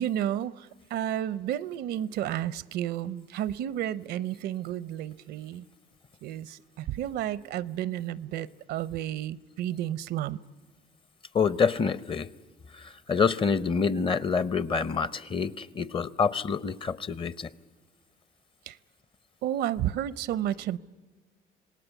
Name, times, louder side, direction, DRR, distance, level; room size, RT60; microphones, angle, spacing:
voice 1, 0.0-5.6 6.2-10.4 18.7-18.8 19.4-20.8, right 11 dB, 75° right, 18 dB, 0.6 m, -31 dB
voice 2, 11.3-12.3 12.7-17.5, left 5 dB, 30° left, 17 dB, 0.7 m, -27 dB
26.5 x 19.0 x 8.2 m, 1.4 s
cardioid pair, 110°, 17 cm